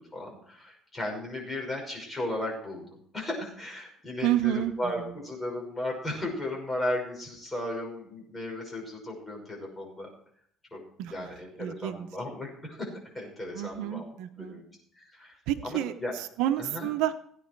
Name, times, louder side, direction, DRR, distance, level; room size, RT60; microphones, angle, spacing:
voice 1, 0.0-10.1 10.7-10.8 11.1-14.0 14.4-14.6 15.0-15.4 15.6-16.1 16.6-16.9, left 1 dB, 15° left, -1 dB, 6.0 m, -35 dB
voice 2, 4.2-4.9 11.0-11.3 11.6-12.1 13.5-14.6 15.5-17.1, right 12 dB, 85° right, 9 dB, 0.9 m, -30 dB
17.0 x 9.6 x 4.7 m, 0.64 s
cardioid pair, 130°, 0 cm